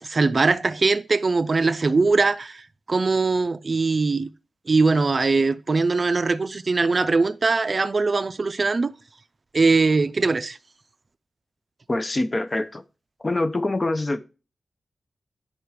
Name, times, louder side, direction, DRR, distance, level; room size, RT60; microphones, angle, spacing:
voice 1, 0.0-4.3 4.7-8.9 9.5-10.6, right 3 dB, 40° right, 0.5 m, -21 dB
voice 2, 11.9-12.8 13.2-14.2, left 2 dB, 25° left, 0.6 m, -25 dB
8.4 x 5.6 x 4.6 m
wide cardioid pair, 110°, 0 cm